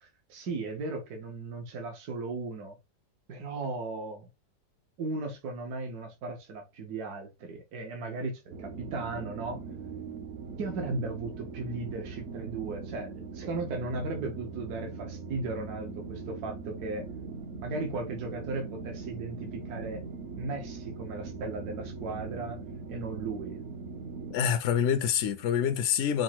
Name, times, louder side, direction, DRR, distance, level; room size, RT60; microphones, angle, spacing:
voice 1, 0.0-2.8 3.3-4.3 5.0-9.6 10.6-17.1 17.6-20.0 20.4-22.6 22.9-23.6, right 3 dB, 75° right, 1.4 m, -36 dB
sound 1, 8.5-24.4, right 4 dB, 60° right, 0.8 m, -41 dB
voice 2, 24.3-26.2, left 8 dB, 70° left, 0.7 m, -26 dB
5.1 x 2.1 x 4.3 m
omnidirectional pair, 1.7 m